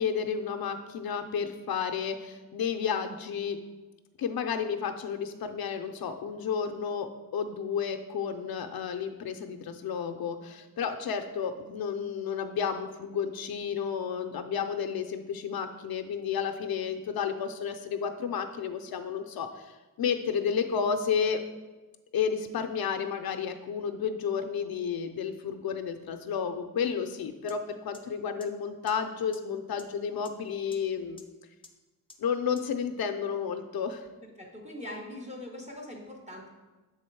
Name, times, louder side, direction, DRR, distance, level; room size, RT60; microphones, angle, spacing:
voice 1, 0.0-3.6 4.2-21.4 22.1-31.2 32.2-34.1, left 7 dB, 85° left, 6 dB, 0.5 m, -32 dB
sound 1, 27.5-27.6 27.9-28.0 28.4-28.5 28.9-29.0 29.3-29.4 29.8-29.9 30.3-30.4 30.7-30.8 31.2-31.3 31.6-31.7 32.1-32.2 32.6-32.7, left 3 dB, 15° left, 0.4 m, -49 dB
voice 2, 34.4-36.5, left 1 dB, 20° right, -2 dB, 0.8 m, -41 dB
6.8 x 3.5 x 4.5 m, 1.2 s
wide cardioid pair, 145°, 35 cm